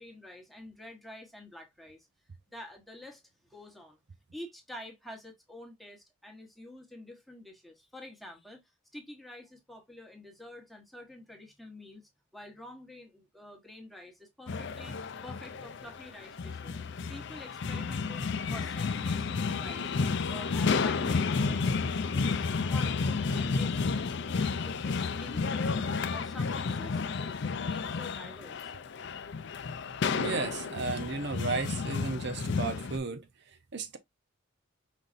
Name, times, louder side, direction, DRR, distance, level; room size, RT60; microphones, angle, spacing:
voice 1, 0.0-2.1 2.5-3.2 3.5-4.0 4.3-8.6 8.9-15.0 15.2-16.8 17.1-19.9 20.3-21.9 22.1-22.4 22.7-28.7, left 1 dB, ahead, 1.1 m, -48 dB
sound 1, 14.5-33.0, left 4 dB, 55° left, 0.5 m, -31 dB
voice 2, 30.1-33.2 33.7-34.0, right 4 dB, 55° right, 0.6 m, -34 dB
5.3 x 3.9 x 2.5 m
head